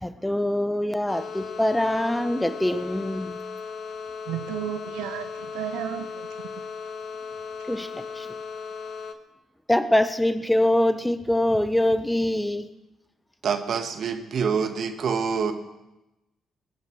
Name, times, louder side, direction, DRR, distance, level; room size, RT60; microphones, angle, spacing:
voice 1, 0.0-3.4 7.7-8.3 9.7-12.6, left 1 dB, 10° left, 11 dB, 1.2 m, -24 dB
sound 1, 1.1-9.1, left 5 dB, 60° left, 1.1 m, -37 dB
voice 2, 4.3-6.3 6.5-6.6, right 11 dB, 75° right, 10 dB, 0.6 m, -33 dB
voice 3, 13.4-15.5, right 6 dB, 55° right, 7 dB, 1.7 m, -26 dB
21.5 x 10.5 x 4.8 m, 0.96 s
hypercardioid pair, 40°, 0 cm